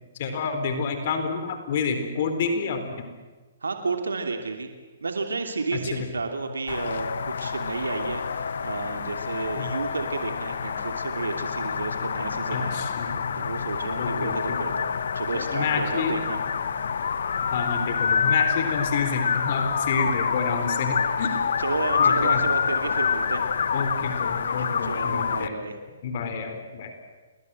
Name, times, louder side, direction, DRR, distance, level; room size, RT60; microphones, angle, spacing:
voice 1, 0.2-3.1 5.7-6.1 9.6-9.7 12.5-13.5 14.0-14.6 15.5-16.1 16.8-16.9 17.4-21.3 22.0-22.5 23.7-25.5 26.0-26.9, left 5 dB, 50° left, 7 dB, 4.0 m, -29 dB
voice 2, 3.6-4.7 5.0-16.4 21.3-23.4 24.8-25.7, right 3 dB, 85° right, 5 dB, 2.9 m, -32 dB
sound 1, 6.7-25.5, left 6 dB, 70° left, 1.5 m, -27 dB
29.5 x 21.5 x 7.8 m, 1.3 s
hypercardioid pair, 130°, 0 cm